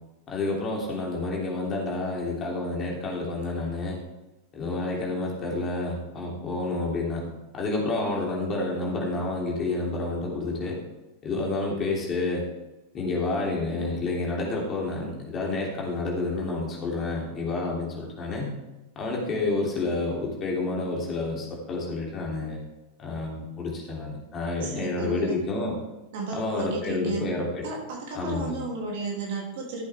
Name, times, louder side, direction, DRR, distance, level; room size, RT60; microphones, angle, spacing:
voice 1, 0.3-4.0 4.5-7.2 7.5-10.8 11.2-12.5 12.9-18.5 18.9-22.6 23.0-25.8 26.3-27.6 28.1-28.6, left 2 dB, 25° left, -2 dB, 3.2 m, -29 dB
voice 2, 24.6-25.4 26.1-27.3 27.6-29.9, right 3 dB, 50° right, -1 dB, 3.1 m, -34 dB
14.0 x 8.1 x 3.6 m, 1.0 s
figure-of-eight pair, 90°, 0 cm